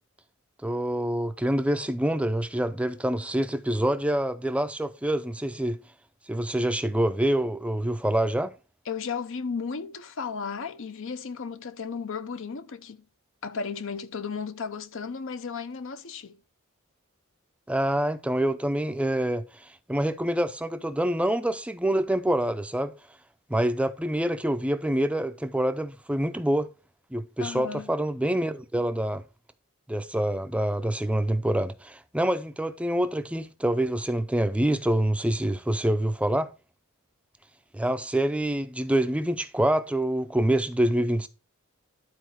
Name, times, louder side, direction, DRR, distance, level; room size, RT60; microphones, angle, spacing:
voice 1, 0.6-5.8 6.3-8.5 17.7-22.9 23.5-26.7 27.1-29.2 29.9-36.5 37.7-41.3, right 1 dB, 5° right, 0.5 m, -26 dB
voice 2, 8.9-13.0 13.4-16.4 27.4-27.9, left 5 dB, 60° left, 0.7 m, -34 dB
11.5 x 4.3 x 4.7 m
head